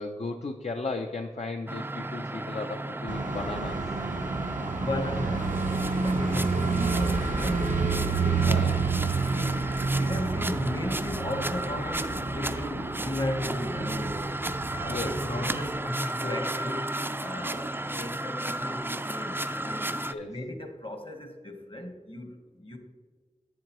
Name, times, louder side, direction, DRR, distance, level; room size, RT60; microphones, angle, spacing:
voice 1, 0.0-3.8 7.9-9.2 14.9-15.6 20.1-20.3, left 3 dB, 60° left, 3 dB, 0.5 m, -36 dB
sound 1, 1.7-20.1, right 1 dB, 15° right, 0.4 m, -34 dB
sound 2, 3.1-15.8, right 4 dB, 85° right, 0.6 m, -30 dB
voice 2, 4.7-7.7 9.3-9.6 10.0-14.2 14.7-19.9 20.2-22.8, left 1 dB, 45° left, 5 dB, 1.1 m, -35 dB
8.6 x 7.7 x 3.0 m, 1.5 s
wide cardioid pair, 45°, 13 cm